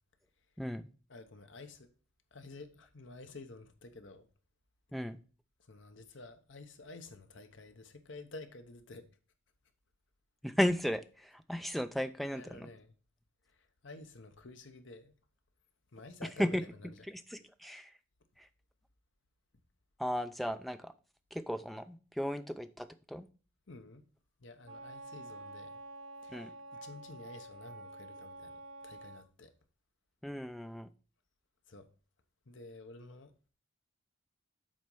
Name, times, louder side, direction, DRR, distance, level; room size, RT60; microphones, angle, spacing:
voice 1, 1.1-1.9 2.3-4.2 5.6-9.1 12.3-12.9 13.5-15.1 15.9-17.0 23.7-24.0 24.4-25.8 26.2-29.5 31.7-31.9 32.5-33.3, left 2 dB, 65° left, 0.9 m, -51 dB
voice 2, 10.4-12.7 16.4-16.6 17.1-17.9 18.4-18.5 20.0-20.9 21.3-23.3 26.3-26.5 30.2-30.9, equal, ahead, 0.3 m, -35 dB
Wind instrument woodwind instrument, 24.6-29.2, right 2 dB, 80° right, 1.4 m, -48 dB
7.6 x 4.2 x 5.4 m
head